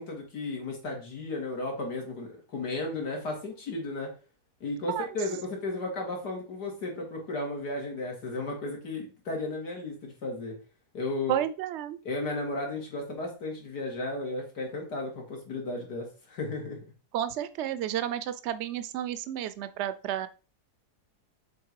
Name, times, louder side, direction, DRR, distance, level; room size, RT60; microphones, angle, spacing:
voice 1, 0.0-4.1 4.6-10.6 10.9-11.4 12.0-16.8, left 2 dB, 85° left, 0 dB, 2.9 m, -34 dB
voice 2, 11.3-12.0 17.1-20.3, right 11 dB, 60° right, 13 dB, 0.8 m, -31 dB
7.2 x 4.2 x 4.7 m, 0.35 s
omnidirectional pair, 1.7 m